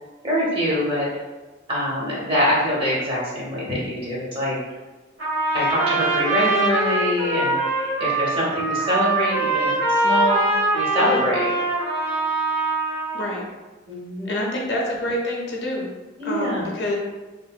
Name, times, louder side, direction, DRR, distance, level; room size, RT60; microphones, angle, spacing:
voice 1, 0.2-1.1 1.7-4.6 5.5-11.5 13.9-14.6 16.2-16.7, equal, 30° right, -5 dB, 0.7 m, -24 dB
Trumpet, 5.2-13.3, right 2 dB, 85° right, 0.9 m, -23 dB
voice 2, 14.2-15.9 16.2-17.0, left 1 dB, 60° left, -2 dB, 0.5 m, -27 dB
2.8 x 2.6 x 2.2 m, 1.2 s
head